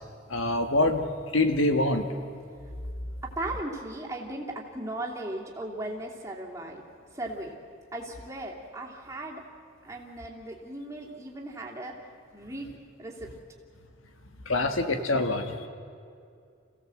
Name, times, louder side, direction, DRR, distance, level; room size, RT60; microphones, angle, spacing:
voice 1, 0.3-1.1 1.3-2.0 14.4-15.7, left 2 dB, 80° left, 6 dB, 1.7 m, -25 dB
voice 2, 3.2-6.8 7.1-7.6 7.9-9.4 9.8-11.9 12.3-12.7 13.0-13.3, right 1 dB, 15° right, -2 dB, 2.8 m, -37 dB
28.5 x 16.5 x 7.8 m, 2.3 s
head